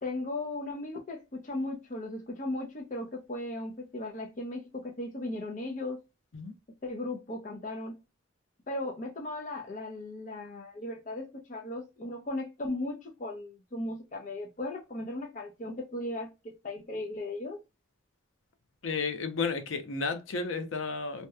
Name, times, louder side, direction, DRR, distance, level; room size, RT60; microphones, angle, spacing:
voice 1, 0.0-6.0 6.8-8.0 8.7-17.6, left 2 dB, 40° left, 0.5 m, -37 dB
voice 2, 18.8-21.3, left 4 dB, 85° left, 0.6 m, -32 dB
2.8 x 2.1 x 2.2 m
head